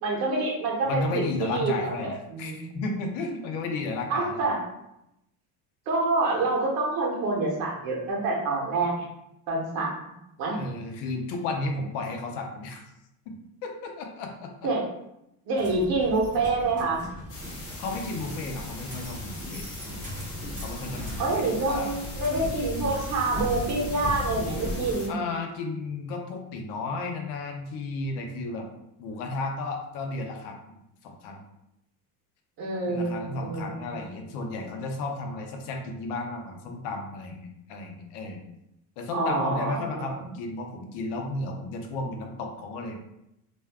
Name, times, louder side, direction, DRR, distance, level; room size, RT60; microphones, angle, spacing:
voice 1, 0.0-2.7 4.1-4.6 5.9-9.1 9.5-9.9 10.4-10.6 14.6-14.8 15.5-17.0 21.2-25.1 32.6-34.0 39.1-40.1, right 3 dB, 60° right, -3 dB, 1.1 m, -27 dB
voice 2, 0.8-4.5 10.5-12.8 13.3-13.4 13.6-14.7 17.8-19.7 20.6-22.0 25.1-28.7 29.0-31.5 32.9-38.4 39.0-42.9, left 3 dB, 80° left, 3 dB, 0.7 m, -33 dB
sound 1, 15.6-25.0, left 1 dB, 20° right, 0.8 m, -37 dB
sound 2, 17.3-25.1, left 2 dB, 35° left, 0.7 m, -42 dB
2.6 x 2.3 x 3.4 m, 0.84 s
cardioid pair, 160°, 40 cm